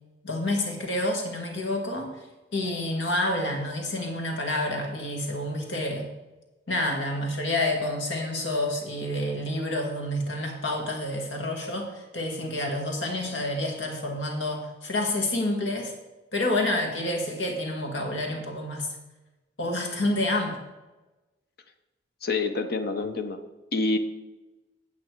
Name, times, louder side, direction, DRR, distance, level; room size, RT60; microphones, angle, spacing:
voice 1, 0.2-2.1 2.5-6.1 6.7-15.9 16.3-18.9 19.6-20.6, left 1 dB, 80° left, 2 dB, 1.9 m, -28 dB
voice 2, 22.2-23.4 23.7-24.0, left 3 dB, 60° left, 8 dB, 0.8 m, -27 dB
8.9 x 8.3 x 4.7 m, 1.1 s
head